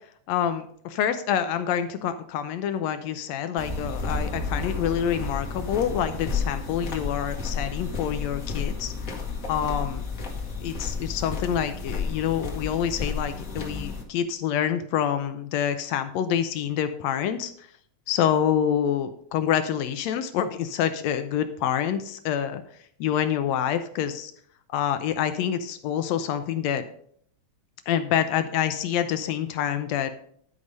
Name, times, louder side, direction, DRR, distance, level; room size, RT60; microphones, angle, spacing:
voice 1, 0.3-9.2 9.5-10.0 10.6-17.7 18.1-22.6 23.0-24.3 24.7-26.8 27.9-30.1, left 9 dB, 75° left, 10 dB, 1.6 m, -27 dB
sound 1, 3.6-14.0, left 4 dB, 55° left, 0.9 m, -31 dB
11.0 x 4.9 x 5.3 m, 0.63 s
omnidirectional pair, 3.5 m